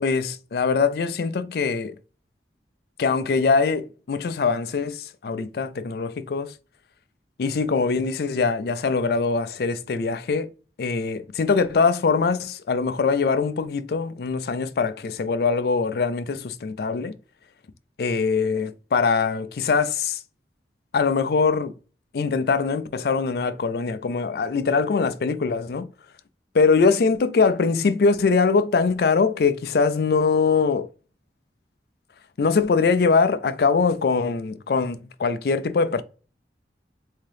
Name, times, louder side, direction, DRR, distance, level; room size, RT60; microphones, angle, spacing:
voice 1, 0.0-1.9 3.0-6.5 7.4-10.5 10.8-17.1 18.0-20.2 20.9-21.7 22.1-25.9 26.5-30.9 32.4-36.0, left 4 dB, 60° left, 0.4 m, -22 dB
3.7 x 2.8 x 3.2 m
head